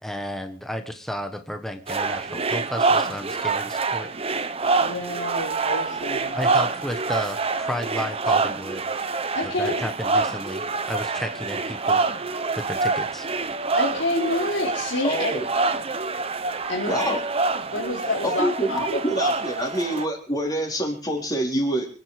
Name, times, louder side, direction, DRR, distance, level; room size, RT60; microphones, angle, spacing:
voice 1, 0.0-4.1 6.3-8.8 9.4-12.0 12.5-13.3, equal, ahead, 6 dB, 1.3 m, -32 dB
sound 1, 1.9-20.0, right 3 dB, 30° right, 1.0 m, -26 dB
voice 2, 4.8-6.4 9.3-9.8 13.7-15.3 16.7-17.1 17.7-18.8, left 1 dB, 75° left, -4 dB, 4.4 m, -28 dB
voice 3, 15.0-15.5 16.9-17.2 18.2-21.9, equal, 20° left, 1 dB, 4.3 m, -26 dB
25.5 x 9.4 x 5.0 m, 0.39 s
head